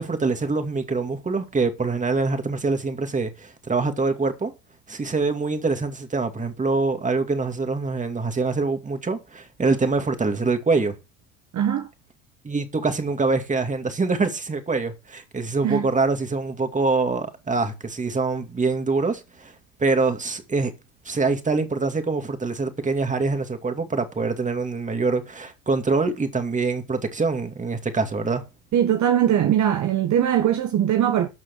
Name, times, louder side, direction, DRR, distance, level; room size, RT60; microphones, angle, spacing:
voice 1, 0.0-4.5 4.9-11.0 12.4-19.5 19.8-20.7 21.0-28.4, right 3 dB, 20° right, 2.5 m, -24 dB
voice 2, 11.5-11.9 15.6-15.9 28.7-31.3, right 10 dB, 45° right, 1.4 m, -21 dB
12.5 x 6.2 x 6.3 m
supercardioid pair, 95°, 39 cm